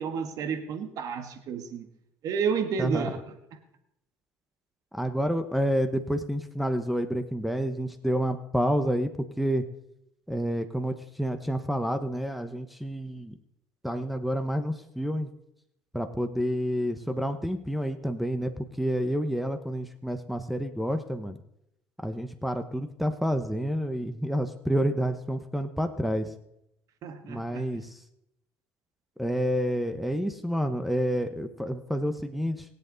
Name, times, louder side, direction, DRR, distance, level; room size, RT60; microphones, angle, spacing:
voice 1, 0.0-1.9 2.2-3.2 27.0-27.6, right 6 dB, 60° right, 9 dB, 1.7 m, -31 dB
voice 2, 2.8-3.1 4.9-9.1 9.4-9.6 10.3-13.4 13.8-15.3 15.9-21.4 22.0-26.3 27.3-28.0 29.2-32.6, equal, ahead, 6 dB, 1.1 m, -29 dB
24.0 x 8.1 x 4.0 m, 0.80 s
supercardioid pair, 90°, 7 cm